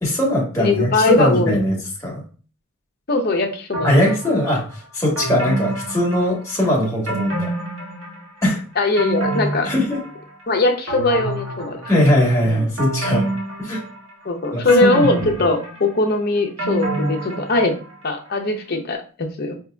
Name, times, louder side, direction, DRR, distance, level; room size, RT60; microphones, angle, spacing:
voice 1, 0.0-2.2 3.8-7.5 8.4-8.6 9.6-10.0 11.9-13.2 13.6-13.8 14.5-14.9 15.2-15.3, left 1 dB, 15° left, -3 dB, 1.2 m, -20 dB
voice 2, 0.6-1.6 3.1-4.0 8.8-9.7 10.5-11.8 12.4-12.6 14.2-17.7 18.0-19.5, left 2 dB, 45° left, 3 dB, 0.6 m, -20 dB
sound 1, 3.7-4.5 5.2-6.6 7.1-8.4 8.7-10.4 10.9-12.2 12.8-14.2 14.7-17.9 18.3-18.4, right 2 dB, 75° right, 1.5 m, -27 dB
4.9 x 2.7 x 2.3 m, 0.39 s
head